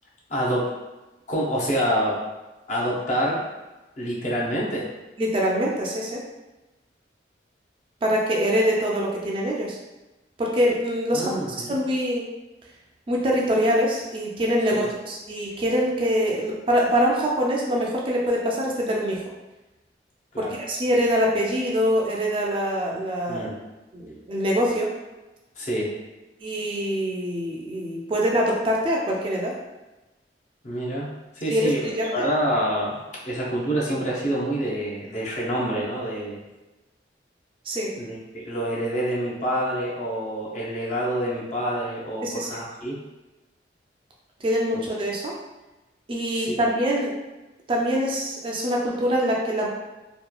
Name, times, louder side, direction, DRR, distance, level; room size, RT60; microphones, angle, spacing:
voice 1, 0.3-0.7 1.3-2.2 2.7-3.4 4.0-4.9 11.1-11.8 14.7-14.9 20.3-20.6 23.3-23.5 25.6-25.9 30.6-31.1 31.4-33.0 33.2-36.4 37.9-43.0 44.7-44.8 46.3-46.6, equal, 40° left, -5 dB, 0.6 m, -27 dB
voice 2, 5.2-6.2 8.0-9.8 10.4-11.3 11.7-12.2 13.1-19.2 20.4-23.5 23.9-24.9 26.4-29.5 31.5-32.1 37.7-37.9 42.2-42.5 44.4-45.3 46.1-47.1 47.7-49.7, equal, 30° right, -3 dB, 0.3 m, -24 dB
2.9 x 2.2 x 2.3 m, 1.1 s
head